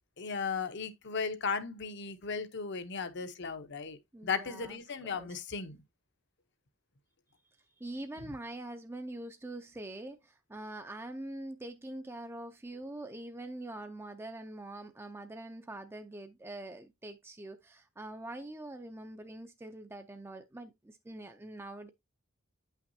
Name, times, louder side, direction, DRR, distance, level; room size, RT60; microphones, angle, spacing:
voice 1, 0.2-5.8, left 5 dB, 55° left, 0.8 m, -36 dB
voice 2, 4.1-4.8 5.0-5.4 7.8-21.9, right 1 dB, 10° right, 0.5 m, -44 dB
9.0 x 5.9 x 2.7 m
head